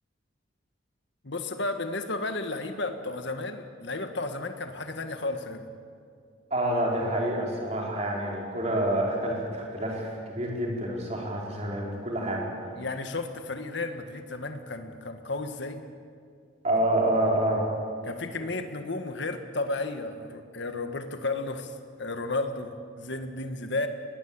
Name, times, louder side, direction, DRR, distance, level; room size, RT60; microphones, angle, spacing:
voice 1, 1.2-5.7 12.8-15.8 18.0-23.9, left 2 dB, 60° left, 7 dB, 1.6 m, -33 dB
voice 2, 6.5-12.5 16.6-17.6, right 1 dB, 35° right, -2 dB, 4.8 m, -27 dB
22.5 x 19.5 x 8.9 m, 2.2 s
head